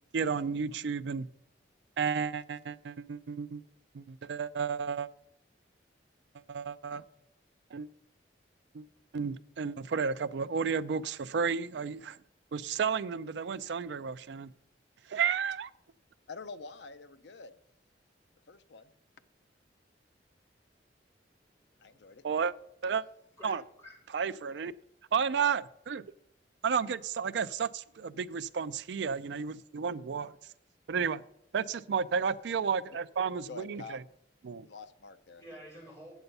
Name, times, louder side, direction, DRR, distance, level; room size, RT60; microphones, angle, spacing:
voice 1, 0.1-1.3 2.0-3.6 3.9-5.1 6.5-7.0 7.7-7.9 8.7-8.8 9.1-12.2 12.5-14.5 15.1-15.7 22.2-22.5 22.8-23.0 23.4-23.6 24.1-24.7 25.1-26.0 26.6-30.3 30.9-31.2 31.5-34.0 34.4-34.7, right 6 dB, 70° right, 0.4 m, -32 dB
voice 2, 16.3-17.6 18.5-18.9 21.8-22.2 33.5-34.0 34.6-35.4, left 4 dB, 70° left, 0.6 m, -46 dB
voice 3, 21.4-22.3 23.4-23.5 23.8-23.9 35.4-36.2, equal, 15° left, 4.3 m, -51 dB
8.1 x 7.9 x 5.4 m
head